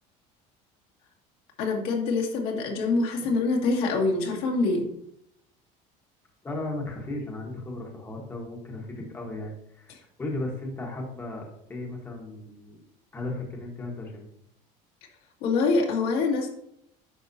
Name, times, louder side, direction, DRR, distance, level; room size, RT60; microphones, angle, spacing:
voice 1, 1.6-4.9 9.9-10.0 15.4-16.5, left 3 dB, 70° left, 0 dB, 2.2 m, -25 dB
voice 2, 6.4-11.4 11.7-12.8 13.1-14.3, left 2 dB, 15° left, -1 dB, 1.3 m, -35 dB
9.8 x 5.7 x 2.7 m, 0.73 s
cardioid pair, 155°, 16 cm